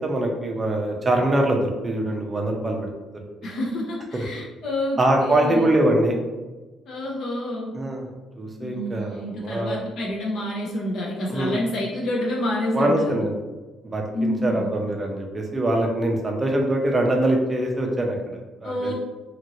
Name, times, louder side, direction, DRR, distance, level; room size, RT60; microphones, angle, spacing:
voice 1, 0.0-2.9 4.1-4.2 5.0-6.2 7.7-8.1 8.4-9.8 11.3-11.5 12.7-13.4 13.8-18.9, right 1 dB, 20° right, 1 dB, 0.5 m, -23 dB
voice 2, 3.4-5.7 6.9-7.7 8.6-13.2 14.1-14.7 18.6-18.9, left 1 dB, 60° left, -4 dB, 0.6 m, -28 dB
2.8 x 2.5 x 2.9 m, 1.2 s
cardioid pair, 150°, 0 cm